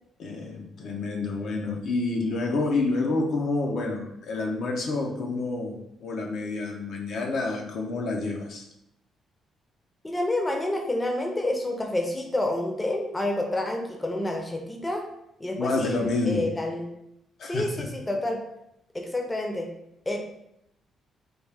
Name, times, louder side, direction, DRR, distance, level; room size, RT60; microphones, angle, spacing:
voice 1, 0.2-8.6 15.6-16.5 17.4-17.9, left 3 dB, 70° left, 1 dB, 0.6 m, -28 dB
voice 2, 10.0-15.0 15.4-16.9 17.4-18.4 18.9-19.7 20.1-20.2, left 1 dB, 15° left, 2 dB, 0.6 m, -28 dB
3.4 x 2.3 x 3.3 m, 0.81 s
cardioid pair, 90°, 0 cm